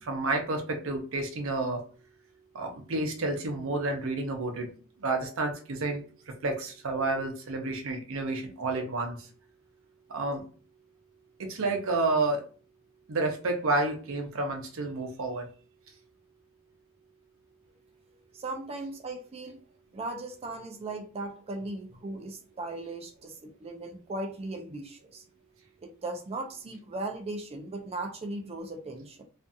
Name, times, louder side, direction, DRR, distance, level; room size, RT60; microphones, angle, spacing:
voice 1, 0.0-1.8 2.5-4.7 5.0-6.0 6.4-9.2 10.1-10.4 11.4-12.4 13.1-15.5, right 2 dB, 70° right, 3 dB, 0.7 m, -30 dB
voice 2, 18.3-19.6 19.9-25.2 25.8-29.2, right 2 dB, 30° right, 4 dB, 0.4 m, -38 dB
2.5 x 2.4 x 2.6 m, 0.39 s
head